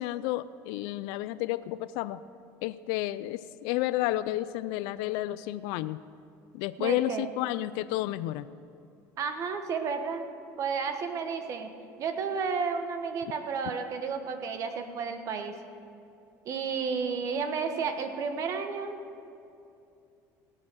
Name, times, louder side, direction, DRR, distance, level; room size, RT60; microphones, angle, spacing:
voice 1, 0.0-2.2 2.6-6.0 6.5-8.5, left 15 dB, 85° left, 15 dB, 0.4 m, -31 dB
voice 2, 6.8-7.3 9.2-10.3 10.6-11.7 12.0-15.6 16.4-19.0, right 5 dB, 45° right, 7 dB, 1.4 m, -32 dB
17.5 x 8.8 x 6.2 m, 2.7 s
cardioid pair, 135°, 7 cm